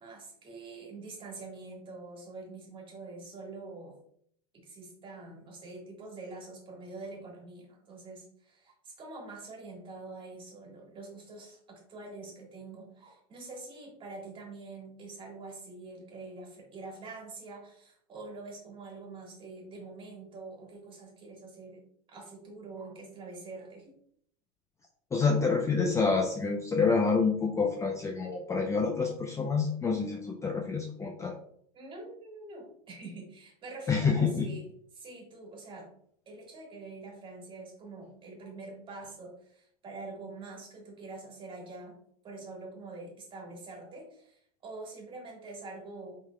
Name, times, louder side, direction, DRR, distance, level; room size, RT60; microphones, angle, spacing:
voice 1, 0.0-4.0 4.5-24.0 31.7-34.7 34.9-35.9 36.3-42.0 42.2-46.2, right 3 dB, 25° right, -1 dB, 1.8 m, -45 dB
voice 2, 25.1-31.3 33.9-34.5, left 4 dB, 15° left, 2 dB, 0.5 m, -27 dB
5.3 x 3.6 x 2.3 m, 0.64 s
hypercardioid pair, 110°, 19 cm